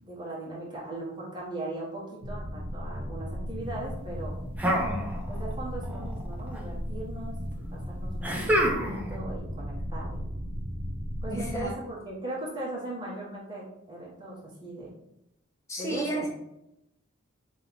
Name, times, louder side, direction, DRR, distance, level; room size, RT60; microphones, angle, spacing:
voice 1, 0.0-4.3 5.3-7.3 7.7-10.3 11.2-14.9 15.8-16.3, right 2 dB, 25° right, -6 dB, 1.3 m, -38 dB
sound 1, 2.2-11.7, equal, 80° right, 0.9 m, -36 dB
sound 2, 4.6-5.6 5.8-6.6 8.2-9.2, equal, 5° right, 0.5 m, -27 dB
voice 2, 11.3-11.7 15.7-16.3, right 1 dB, 15° left, -4 dB, 1.0 m, -32 dB
3.3 x 2.9 x 4.2 m, 0.86 s
head